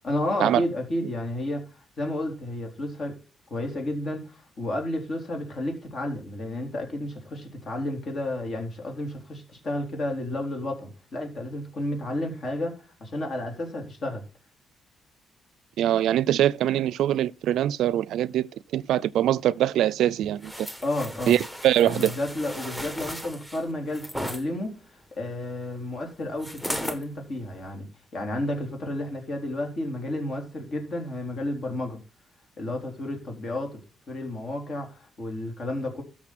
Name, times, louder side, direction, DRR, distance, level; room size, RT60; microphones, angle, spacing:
voice 1, 0.0-3.2 3.5-12.7 13.0-14.2 20.8-21.3 21.8-24.8 25.2-27.9 28.1-32.0 32.6-33.8 34.1-36.0, left 1 dB, 50° left, 4.1 m, -31 dB
voice 2, 15.8-20.7 21.3-22.1, right 12 dB, 80° right, 0.4 m, -23 dB
sound 1, 20.4-24.4 26.4-27.0 27.6-27.7, equal, 10° left, 1.4 m, -36 dB
13.0 x 6.4 x 4.3 m
cardioid pair, 90°, 0 cm